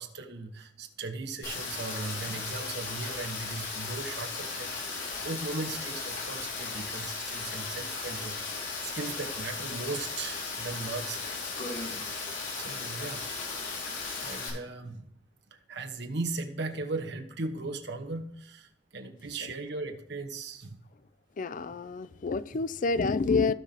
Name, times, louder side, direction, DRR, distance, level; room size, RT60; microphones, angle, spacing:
voice 1, 0.0-11.4 12.5-13.6 14.2-15.1 15.5-20.8, right 3 dB, 65° right, 1.3 m, -38 dB
Rain, 1.4-14.5, left 4 dB, 75° left, 3.8 m, -36 dB
sound 1, 5.5-12.3, left 1 dB, 60° left, 3.3 m, -48 dB
voice 2, 21.4-23.5, left 4 dB, 45° left, 0.4 m, -28 dB
16.5 x 5.9 x 2.9 m
head